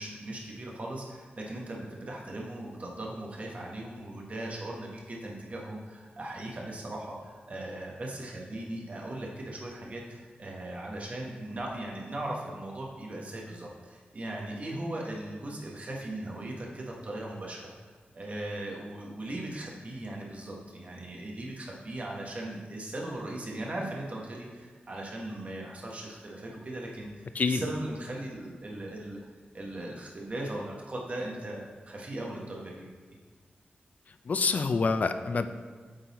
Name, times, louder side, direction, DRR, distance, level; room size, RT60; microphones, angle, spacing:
voice 1, 0.0-29.2 29.5-33.0, right 1 dB, 40° right, -2 dB, 1.1 m, -38 dB
voice 2, 34.3-35.5, left 4 dB, 45° left, 10 dB, 0.3 m, -26 dB
8.8 x 3.9 x 4.1 m, 1.5 s
wide cardioid pair, 165°, 4 cm